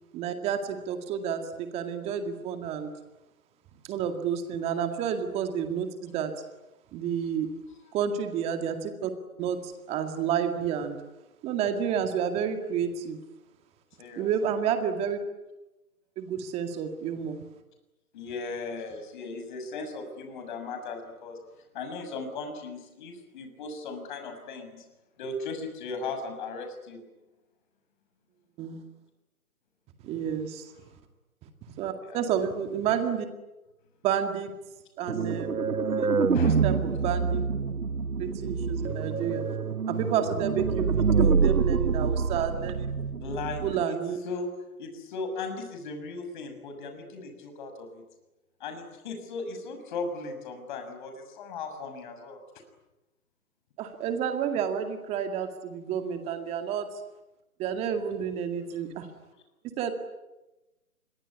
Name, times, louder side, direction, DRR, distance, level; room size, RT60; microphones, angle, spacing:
voice 1, 0.1-2.9 3.9-6.3 6.9-7.5 7.9-9.1 9.4-11.0 11.4-13.2 14.2-15.2 16.2-17.4 28.6-28.8 30.0-30.7 31.6-33.3 34.0-34.5 35.0-35.5 35.9-36.1 36.4-37.4 38.2-39.4 39.9-42.9 43.6-44.2 53.8-56.9 57.6-59.1 59.8-59.9, right 8 dB, 15° right, 7 dB, 2.1 m, -30 dB
voice 2, 14.0-14.5 18.1-21.4 21.7-24.8 25.2-27.0 32.0-32.3 36.3-36.6 43.2-44.0 44.2-44.5 44.8-48.0 48.6-52.4, left 3 dB, 35° left, 6 dB, 6.5 m, -37 dB
sound 1, 35.1-43.8, right 5 dB, 90° right, 1.0 m, -26 dB
27.5 x 22.5 x 9.7 m, 1.0 s
figure-of-eight pair, 145°, 43 cm